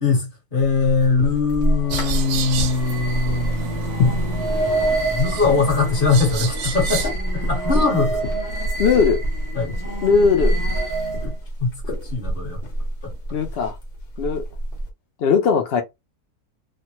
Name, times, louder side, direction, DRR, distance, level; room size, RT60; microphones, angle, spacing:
voice 1, 0.0-8.2 9.5-9.7 11.2-12.6, left 4 dB, 35° left, 1.4 m, -22 dB
sound 1, 0.6-14.9, equal, 55° left, 1.3 m, -27 dB
sound 2, 1.6-11.4, right 2 dB, 15° left, 0.7 m, -28 dB
sound 3, 1.9-7.1, right 9 dB, 85° right, 1.1 m, -32 dB
voice 2, 8.8-9.2 10.0-10.6 13.3-13.8 14.2-14.4 15.2-15.8, left 5 dB, 80° left, 0.5 m, -18 dB
3.2 x 2.1 x 2.8 m
omnidirectional pair, 1.6 m